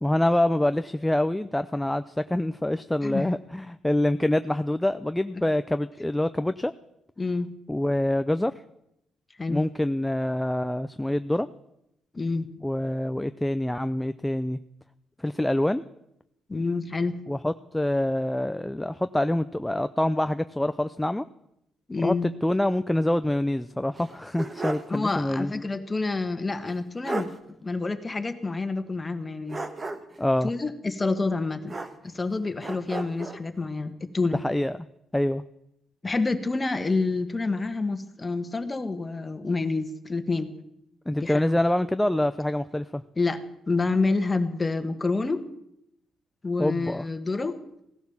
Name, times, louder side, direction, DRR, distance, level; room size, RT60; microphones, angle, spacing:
voice 1, 0.0-6.7 7.7-8.5 9.5-11.5 12.6-14.6 15.2-15.8 17.3-21.2 22.0-25.5 30.2-30.5 34.3-34.8 35.1-35.4 41.1-43.0 46.6-47.0, left 1 dB, 5° left, 11 dB, 0.5 m, -26 dB
voice 2, 7.2-7.5 9.4-9.6 12.1-12.5 16.5-17.2 21.9-22.3 24.9-27.3 27.6-29.6 30.4-31.8 32.0-34.4 36.0-40.5 41.2-41.6 43.2-45.4 46.4-47.6, left 3 dB, 25° left, 8 dB, 1.6 m, -28 dB
sound 1, 23.9-25.0 25.3-25.4 26.7-26.8 27.0-27.4 29.5-30.2 31.7-32.3 32.6-33.4, right 2 dB, 30° right, 1.4 m, -34 dB
16.5 x 11.5 x 7.2 m, 0.80 s
cardioid pair, 90°, 0 cm